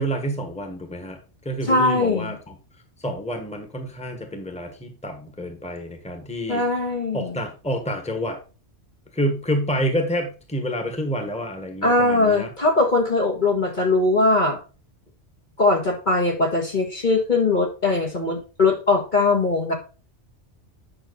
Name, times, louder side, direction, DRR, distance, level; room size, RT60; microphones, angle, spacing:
voice 1, 0.0-2.5 3.0-6.6 7.1-8.4 9.1-12.5, equal, 5° left, 5 dB, 1.4 m, -28 dB
voice 2, 1.7-2.4 6.5-7.4 11.8-14.6 15.6-19.7, left 2 dB, 40° left, 1 dB, 1.6 m, -20 dB
8.7 x 5.9 x 4.1 m, 0.34 s
omnidirectional pair, 1.2 m